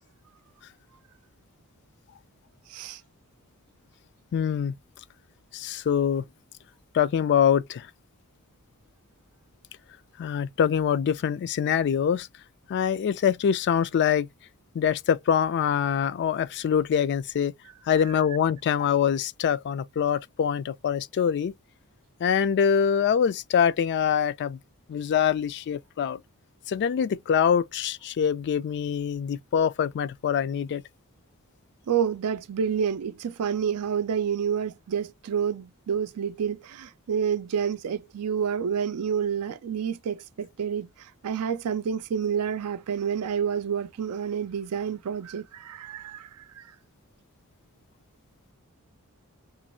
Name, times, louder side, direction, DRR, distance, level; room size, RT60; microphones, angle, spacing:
voice 1, 2.7-3.0 31.9-46.7, right 7 dB, 85° right, 0.4 m, -29 dB
voice 2, 4.3-4.7 5.5-6.2 6.9-7.9 10.2-12.3 12.7-14.3 14.7-17.5 17.9-21.5 22.2-24.6 24.9-26.2 26.7-30.8, left 8 dB, 50° left, 0.3 m, -24 dB
3.0 x 2.5 x 4.1 m
head